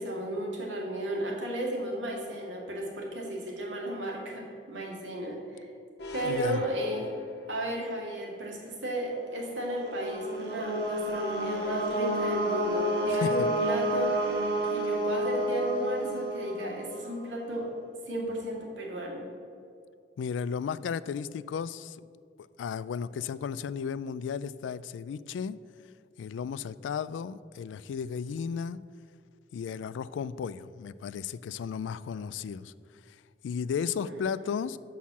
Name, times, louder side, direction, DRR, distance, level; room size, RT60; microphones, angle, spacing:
voice 1, 0.0-5.7 6.1-7.1 7.5-14.3 14.6-17.7 18.1-19.2 34.0-34.4, right 1 dB, 90° right, 2.0 m, -34 dB
sound 1, 6.0-8.0, left 2 dB, 60° left, 0.9 m, -42 dB
voice 2, 6.2-6.6 13.2-13.5 20.2-22.0 22.6-25.6 26.2-28.8 29.5-32.7 33.4-34.8, left 6 dB, 90° left, 0.3 m, -34 dB
sound 2, 8.9-17.1, equal, 65° right, 0.6 m, -46 dB
sound 3, 9.5-17.2, equal, 30° left, 1.8 m, -30 dB
6.4 x 5.7 x 7.1 m
head